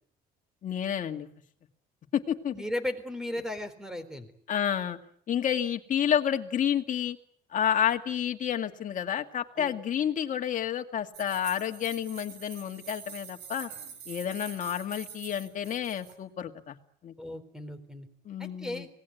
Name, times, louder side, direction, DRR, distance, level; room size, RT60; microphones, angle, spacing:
voice 1, 0.6-1.3 2.1-2.6 4.5-5.0 5.3-7.2 7.5-13.7 14.1-16.8 17.0-17.1 18.3-18.9, left 9 dB, 50° left, 5 dB, 2.2 m, -30 dB
voice 2, 2.5-4.3 9.6-9.8 17.2-18.1 18.4-18.9, left 1 dB, 5° right, 12 dB, 3.9 m, -36 dB
sound 1, 11.1-16.1, right 7 dB, 80° right, 5.1 m, -45 dB
25.5 x 18.5 x 9.4 m, 0.65 s
cardioid pair, 110°, 17 cm